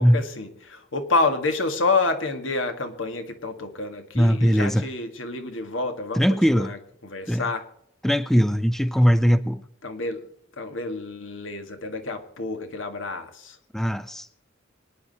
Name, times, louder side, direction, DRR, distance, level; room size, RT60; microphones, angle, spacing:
voice 1, 0.0-7.7 9.8-10.3 10.6-13.6, left 3 dB, 75° left, 1.8 m, -28 dB
voice 2, 4.2-4.8 6.2-6.7 7.3-7.4 8.0-9.7 13.7-14.3, equal, ahead, 0.4 m, -20 dB
25.0 x 9.6 x 4.1 m
head